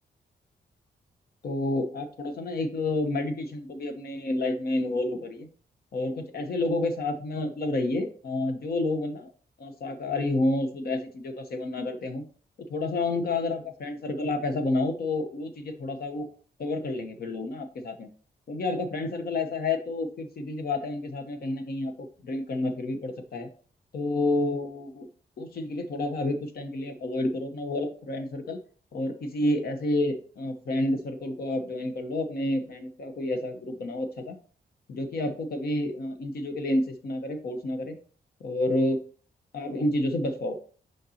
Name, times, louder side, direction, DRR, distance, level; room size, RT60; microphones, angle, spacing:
voice 1, 1.4-5.5 5.9-9.3 9.6-12.2 12.6-16.3 16.6-18.1 18.5-23.5 23.9-25.1 25.4-28.6 28.9-34.4 34.9-38.0 38.4-39.0 39.5-40.6, left 2 dB, 65° left, 6 dB, 1.0 m, -29 dB
6.5 x 5.3 x 2.8 m, 0.42 s
wide cardioid pair, 155°, 17 cm